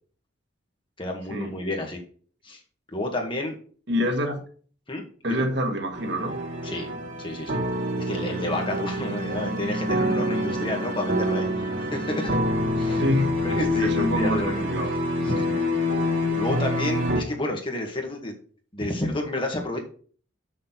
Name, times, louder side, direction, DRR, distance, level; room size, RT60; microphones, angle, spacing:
voice 1, 1.0-2.0 2.4-2.6 2.9-3.6 4.9-5.4 6.6-6.9 7.2-7.6 8.0-11.5 11.8-12.4 12.8-13.0 13.4-14.6 15.2-15.7 16.4-18.3 18.7-19.8, left 1 dB, 25° left, 2.0 m, -30 dB
voice 2, 3.9-4.4 5.2-6.4 9.4-9.6 13.0-13.4 13.8-14.9, equal, 65° right, 1.8 m, -26 dB
sound 1, 5.9-17.2, left 1 dB, 85° right, 2.9 m, -26 dB
6.9 x 6.3 x 6.0 m
head